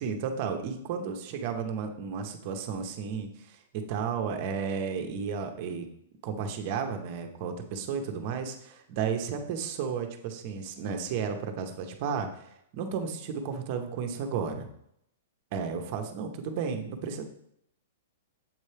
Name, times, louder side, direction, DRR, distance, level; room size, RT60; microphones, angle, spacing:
voice 1, 0.0-5.8 6.2-14.7 15.5-17.2, right 6 dB, 40° right, 5 dB, 0.8 m, -33 dB
7.4 x 4.3 x 3.3 m, 0.74 s
hypercardioid pair, 160°, 0 cm